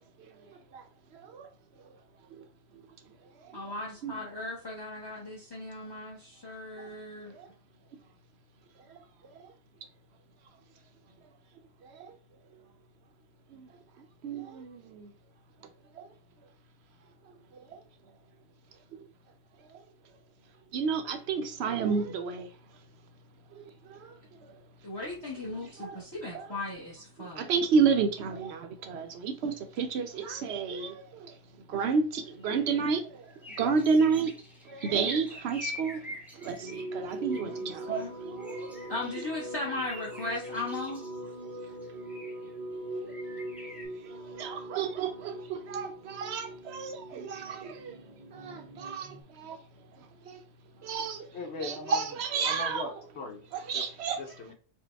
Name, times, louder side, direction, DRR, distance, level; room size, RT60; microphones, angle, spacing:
voice 1, 1.1-1.5 4.0-4.2 7.4-7.5 12.0-12.1 13.5-13.7 14.2-15.1 20.7-22.5 23.6-23.7 23.9-24.1 25.8-26.0 26.3-26.5 27.2-31.3 31.7-33.2 33.6-34.3 34.7-36.0 36.4-38.7 44.4-48.0 48.3-49.6 50.3-50.4 50.8-51.3 51.6-52.8 53.5-54.2, right 5 dB, 70° right, 0.9 m, -30 dB
voice 2, 3.5-7.4 24.8-27.5 37.4-37.6 37.9-38.1 38.9-41.0, left 2 dB, 25° left, 0.9 m, -37 dB
sound 1, 32.4-32.9 33.3-38.0 38.4-41.2 41.8-42.5 43.1-43.9, left 2 dB, ahead, 0.7 m, -46 dB
sound 2, 36.6-49.2, right 1 dB, 45° right, 0.5 m, -41 dB
voice 3, 51.3-52.1 52.4-53.4 53.7-53.8 54.2-54.5, left 3 dB, 75° left, 1.1 m, -39 dB
4.5 x 2.2 x 3.3 m
omnidirectional pair, 1.1 m